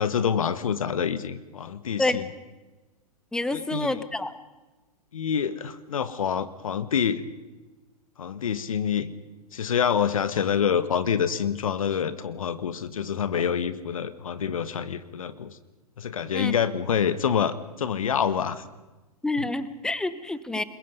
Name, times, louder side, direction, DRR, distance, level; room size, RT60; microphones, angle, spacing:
voice 1, 0.0-2.3 3.5-4.0 5.1-7.2 8.2-9.1 9.5-15.6 16.0-18.6 20.5-20.6, left 7 dB, 60° left, 14 dB, 1.4 m, -27 dB
voice 2, 3.3-4.3 16.3-16.5 19.2-20.6, left 2 dB, 5° left, 14 dB, 1.0 m, -28 dB
29.5 x 21.5 x 5.4 m, 1.1 s
figure-of-eight pair, 105°, 20 cm